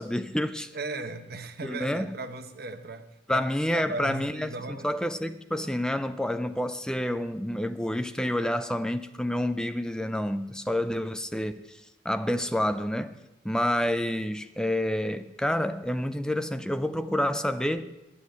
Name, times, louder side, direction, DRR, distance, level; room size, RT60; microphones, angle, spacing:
voice 1, 0.0-0.7 1.6-2.1 3.3-11.8 12.0-13.2 13.4-17.9, left 1 dB, 5° left, 0.5 m, -28 dB
voice 2, 0.7-3.5 3.7-4.9, right 3 dB, 55° right, 0.9 m, -37 dB
9.6 x 8.5 x 8.0 m
head